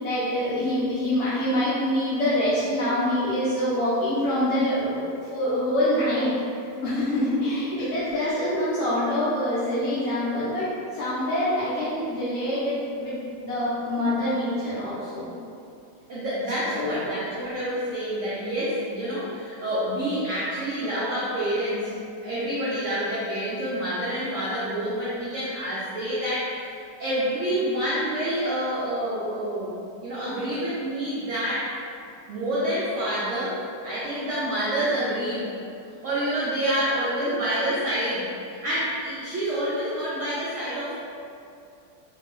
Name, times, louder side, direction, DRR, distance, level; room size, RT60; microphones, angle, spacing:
voice 1, 0.0-5.0 5.3-6.3 6.8-10.7 10.9-13.2 13.4-15.3 16.7-17.0, left 1 dB, 65° left, -12 dB, 0.7 m, -25 dB
voice 2, 16.1-22.0 22.2-29.7 30.0-31.7 32.3-35.5 35.8-41.0, equal, 80° right, -9 dB, 0.6 m, -28 dB
2.9 x 2.2 x 2.9 m, 2.5 s
omnidirectional pair, 1.9 m